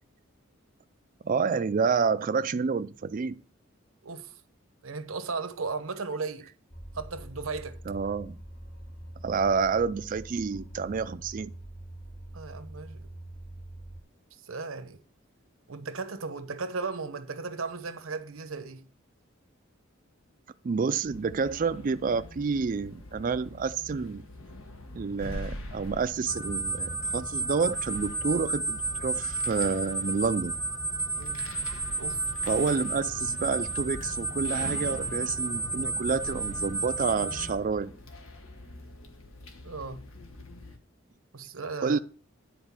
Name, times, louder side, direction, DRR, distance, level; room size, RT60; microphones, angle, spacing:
voice 1, 1.2-3.4 7.9-8.4 9.2-11.5 20.6-24.2 24.9-30.5 32.5-37.9 41.8-42.0, right 5 dB, 40° right, 0.4 m, -29 dB
voice 2, 4.0-4.4 4.8-6.5 6.9-7.8 12.3-13.1 14.4-15.0 15.7-18.9 31.2-31.5 32.0-32.2 39.6-40.0 41.3-42.0, right 4 dB, 80° right, 0.9 m, -36 dB
sound 1, 6.7-14.0, right 1 dB, 50° left, 1.3 m, -44 dB
sound 2, 21.0-40.8, left 2 dB, 80° left, 1.3 m, -44 dB
sound 3, 26.3-37.5, right 3 dB, 15° left, 1.0 m, -32 dB
10.0 x 4.3 x 5.9 m
head